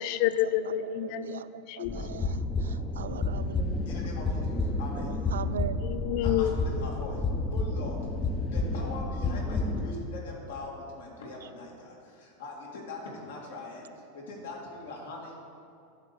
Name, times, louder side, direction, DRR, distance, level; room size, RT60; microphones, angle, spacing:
voice 1, 0.0-2.0 5.8-6.5, left 13 dB, 60° left, 14 dB, 0.4 m, -29 dB
voice 2, 0.6-3.6 5.0-5.8, right 8 dB, 80° right, 14 dB, 0.3 m, -40 dB
sound 1, 1.9-9.9, left 2 dB, 20° left, 0.9 m, -30 dB
voice 3, 3.9-4.4 4.8-5.1 6.2-7.2 7.5-7.9 8.5-11.9 12.4-13.8 14.3-15.4, left 2 dB, 75° left, -2 dB, 2.2 m, -41 dB
11.0 x 3.9 x 7.0 m, 2.6 s
hypercardioid pair, 100°, 0 cm